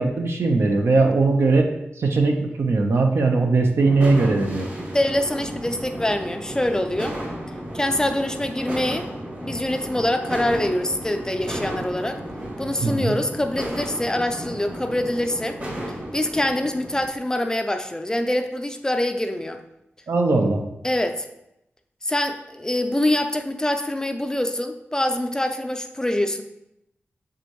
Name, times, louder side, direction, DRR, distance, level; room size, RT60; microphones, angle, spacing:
voice 1, 0.0-1.7 2.0-4.7 12.8-13.1 20.1-20.6, right 3 dB, 70° right, 3 dB, 0.8 m, -19 dB
sound 1, 3.8-17.1, right 1 dB, 45° right, 2.0 m, -33 dB
voice 2, 4.9-7.2 7.7-9.1 9.4-12.2 12.6-15.6 16.1-19.6 20.8-21.3 22.0-26.4, left 1 dB, 15° left, 6 dB, 0.4 m, -24 dB
6.8 x 5.0 x 3.0 m, 0.84 s
wide cardioid pair, 115°, 4 cm